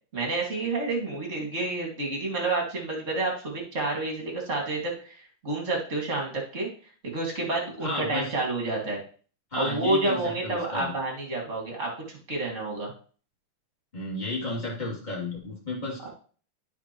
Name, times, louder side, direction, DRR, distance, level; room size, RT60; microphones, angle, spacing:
voice 1, 0.1-6.7 7.0-9.0 9.5-12.9 16.0-16.1, right 2 dB, 30° right, 0 dB, 1.7 m, -29 dB
voice 2, 7.8-8.3 9.5-10.9 13.9-16.1, left 2 dB, 15° left, -4 dB, 1.8 m, -32 dB
12.0 x 5.0 x 3.0 m, 0.41 s
omnidirectional pair, 4.0 m